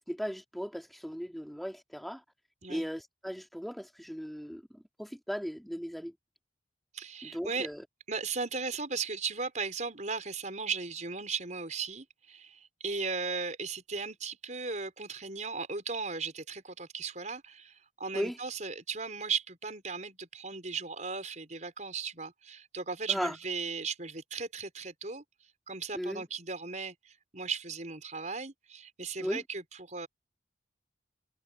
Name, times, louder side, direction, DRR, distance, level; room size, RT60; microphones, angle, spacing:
voice 1, 0.1-2.2 2.7-6.1 7.2-7.8 18.1-18.4 23.1-23.3 25.9-26.2 29.2-29.4, equal, ahead, 3.6 m, -37 dB
voice 2, 6.9-7.7 8.1-25.2 25.7-30.1, right 5 dB, 40° right, 5.5 m, -37 dB
head